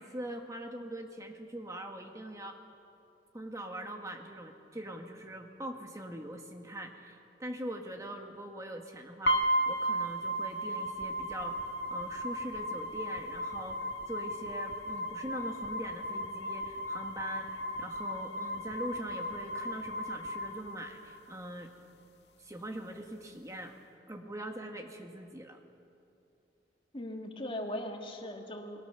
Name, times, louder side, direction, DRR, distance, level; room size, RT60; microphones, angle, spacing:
voice 1, 0.0-2.6 3.3-11.6 11.9-21.7 22.4-23.7 24.1-25.6, right 1 dB, 20° right, 3 dB, 1.5 m, -42 dB
sound 1, 9.3-21.3, equal, 70° left, 2.0 m, -35 dB
voice 2, 26.9-28.8, left 1 dB, 30° left, 2 dB, 2.3 m, -39 dB
29.0 x 22.5 x 6.9 m, 2.7 s
head